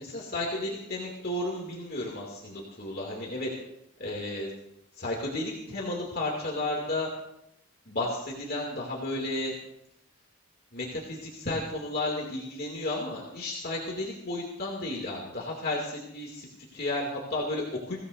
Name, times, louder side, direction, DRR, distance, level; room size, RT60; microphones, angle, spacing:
voice 1, 0.0-3.5 4.0-4.5 4.9-7.1 7.9-9.5 10.7-18.1, left 2 dB, 45° left, -2 dB, 2.6 m, -33 dB
23.0 x 16.5 x 2.7 m, 0.82 s
head